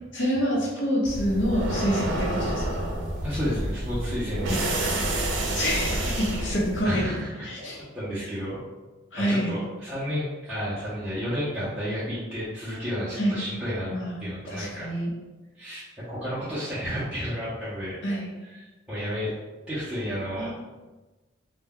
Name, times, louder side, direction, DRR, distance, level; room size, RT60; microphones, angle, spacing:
voice 1, 0.1-3.0 5.5-7.1 7.4-7.8 9.1-9.5 13.2-13.3 13.9-14.1 14.5-15.1 18.0-18.3 20.4-20.5, equal, 75° left, -4 dB, 0.7 m, -27 dB
sound 1, 1.1-6.8, right 1 dB, 85° right, 0.5 m, -28 dB
voice 2, 3.2-4.7 6.8-7.3 7.9-8.6 9.2-13.9 14.2-14.9 15.6-18.0 18.4-19.3 19.7-20.5, equal, 5° right, -14 dB, 0.6 m, -31 dB
2.2 x 2.2 x 3.5 m, 1.2 s
head